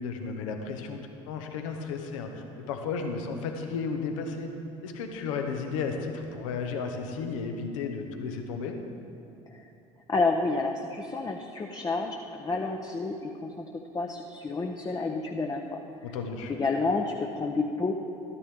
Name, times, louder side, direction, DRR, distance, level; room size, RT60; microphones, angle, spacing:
voice 1, 0.0-4.5 4.8-8.8 16.0-16.5, left 5 dB, 75° left, 4 dB, 1.0 m, -33 dB
voice 2, 10.1-13.6 13.9-15.8 16.5-17.9, left 3 dB, 20° left, 2 dB, 0.7 m, -30 dB
12.5 x 9.7 x 3.5 m, 2.7 s
hypercardioid pair, 60°, 17 cm